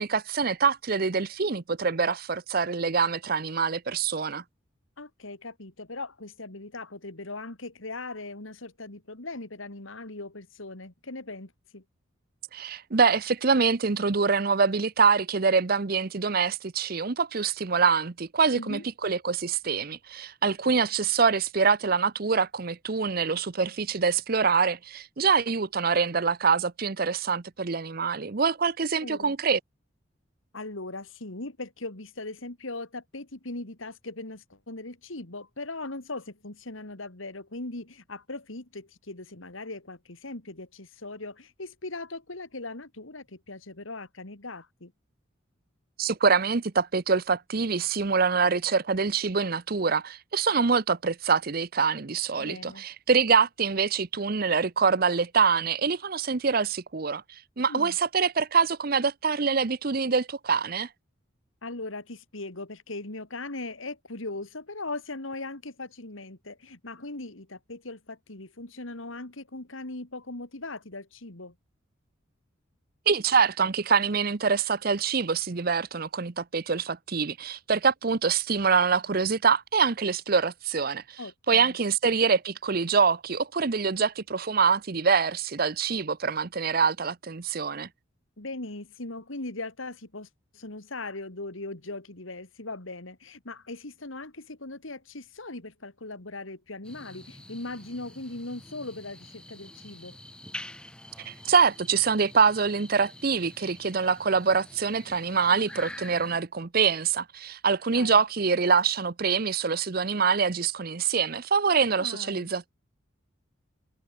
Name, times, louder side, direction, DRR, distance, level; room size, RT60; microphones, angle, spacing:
voice 1, 0.0-4.4 12.5-29.6 46.0-57.2 57.6-60.9 73.1-81.2 81.5-87.9 101.2-112.7, right 5 dB, 50° right, 0.7 m, -25 dB
voice 2, 5.0-11.8 18.5-18.8 29.0-29.3 30.5-44.9 52.4-52.8 57.7-58.0 61.6-71.5 81.2-81.8 88.4-100.2 107.9-108.2 111.9-112.5, left 2 dB, 80° left, 2.7 m, -39 dB
sound 1, 96.8-106.4, left 1 dB, 5° left, 2.0 m, -46 dB
head